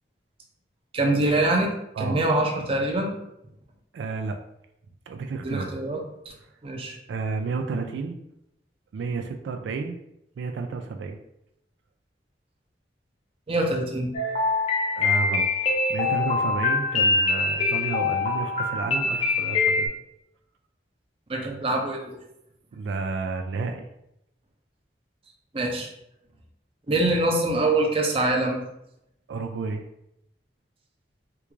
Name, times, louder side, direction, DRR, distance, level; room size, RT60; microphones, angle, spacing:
voice 1, 0.9-1.7 2.0-3.1 5.4-6.3 6.6-7.0 13.5-14.1 21.3-22.2 25.5-25.9 26.9-28.6, right 2 dB, 30° right, 1 dB, 0.5 m, -24 dB
voice 2, 3.9-4.4 5.1-5.8 7.1-8.2 8.9-10.0 10.4-11.2 15.0-19.9 22.7-23.8 29.3-29.8, right 4 dB, 85° right, 5 dB, 0.3 m, -31 dB
sound 1, 14.1-19.9, left 3 dB, 35° left, 0.5 m, -24 dB
3.4 x 2.4 x 3.1 m, 0.82 s
head